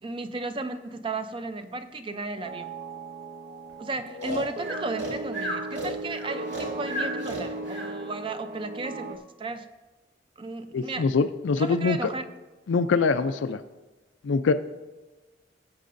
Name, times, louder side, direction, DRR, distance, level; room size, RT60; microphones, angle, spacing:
voice 1, 0.0-2.7 3.8-9.7 10.4-11.1 11.6-12.3, right 3 dB, 30° right, 9 dB, 0.5 m, -34 dB
sound 1, 2.4-9.2, right 2 dB, 60° right, 0.8 m, -37 dB
Breathing, 4.2-7.9, right 1 dB, 75° right, 2.5 m, -33 dB
voice 2, 10.7-12.0 12.7-13.6 14.2-14.5, left 4 dB, 90° left, 11 dB, 0.4 m, -24 dB
16.5 x 7.5 x 2.6 m, 1.2 s
head